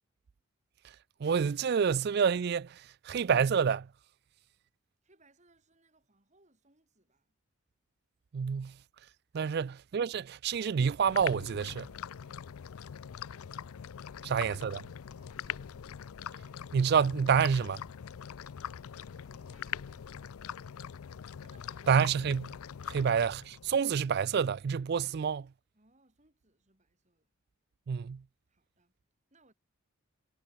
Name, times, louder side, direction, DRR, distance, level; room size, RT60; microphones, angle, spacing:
voice 1, 1.2-3.9 8.3-8.7 9.3-11.9 14.2-14.8 16.7-17.8 21.9-22.5 22.9-25.5 27.9-28.2, right 6 dB, 50° right, 0.3 m, -28 dB
voice 2, 5.0-7.3 14.1-14.8 15.2-15.8 19.1-20.1 21.4-22.0 25.7-27.3 28.5-29.0 29.3-29.5, right 2 dB, 35° right, 4.1 m, -67 dB
sound 1, 11.1-23.8, left 8 dB, 90° left, 0.5 m, -43 dB
head